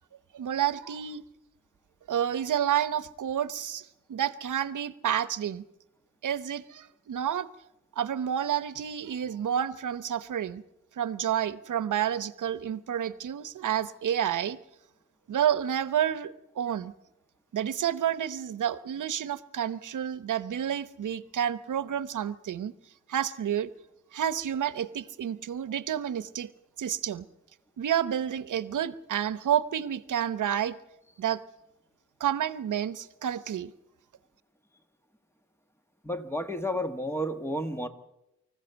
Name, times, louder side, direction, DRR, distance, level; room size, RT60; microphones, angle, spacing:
voice 1, 0.3-1.2 2.1-5.6 6.2-7.5 8.0-10.6 11.0-14.6 15.3-16.9 17.5-22.7 23.1-23.7 24.1-26.5 26.8-27.3 27.8-30.8 31.2-31.4 32.2-33.7, right 10 dB, 85° right, 15 dB, 0.9 m, -30 dB
voice 2, 36.0-37.9, equal, 10° left, 7 dB, 1.5 m, -31 dB
25.0 x 15.0 x 8.0 m, 0.90 s
wide cardioid pair, 150°, 30 cm